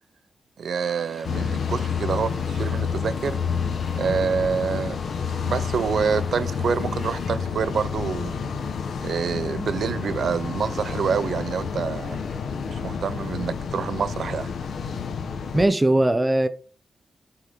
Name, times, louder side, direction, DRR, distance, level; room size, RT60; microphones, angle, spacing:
voice 1, 0.6-3.4 3.9-5.0 5.4-8.4 9.0-12.2 12.7-14.5, right 6 dB, 75° right, 0.5 m, -27 dB
sound 1, 0.7-7.3, left 2 dB, 25° left, 3.1 m, -47 dB
sound 2, 1.2-15.7, left 6 dB, 80° left, 1.0 m, -29 dB
voice 2, 15.5-16.5, right 1 dB, 20° right, 0.8 m, -19 dB
10.0 x 5.7 x 3.7 m
cardioid pair, 65°, 0 cm